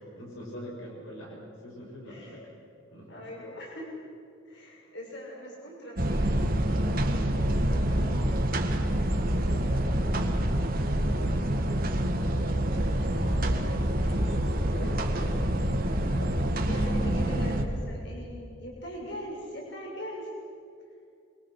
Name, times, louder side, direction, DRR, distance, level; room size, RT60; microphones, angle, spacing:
voice 1, 0.2-2.4 2.9-3.2 6.7-7.3 14.0-15.4, equal, 75° left, -2 dB, 6.4 m, -44 dB
voice 2, 2.0-2.5 3.1-3.9 4.4-6.2 7.9-8.6 8.9-10.0 10.8-10.9 11.6-11.7 12.7-14.6 16.6-20.3, equal, 55° left, -2 dB, 6.6 m, -42 dB
sound 1, 6.0-17.6, right 1 dB, 45° right, 1.8 m, -26 dB
28.0 x 23.0 x 6.6 m, 2.5 s
head